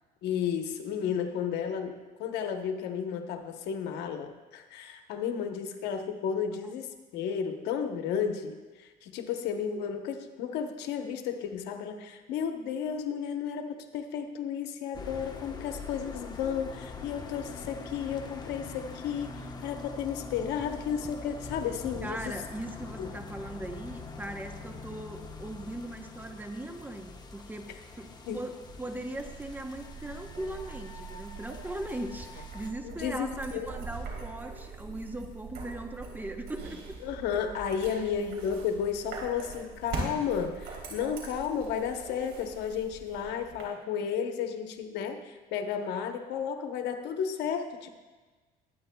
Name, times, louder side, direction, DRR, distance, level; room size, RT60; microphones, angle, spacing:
voice 1, 0.2-22.4 23.0-23.1 28.3-28.4 32.8-33.7 37.0-47.9, left 7 dB, 85° left, 6 dB, 1.0 m, -33 dB
sound 1, 14.9-32.7, left 3 dB, 25° left, 1.0 m, -44 dB
voice 2, 22.0-27.7 28.0-36.9, right 1 dB, 10° right, 5 dB, 0.9 m, -39 dB
sound 2, 29.1-43.7, right 4 dB, 75° right, 3.2 m, -42 dB
21.5 x 9.3 x 2.3 m, 1.3 s
cardioid pair, 110°, 17 cm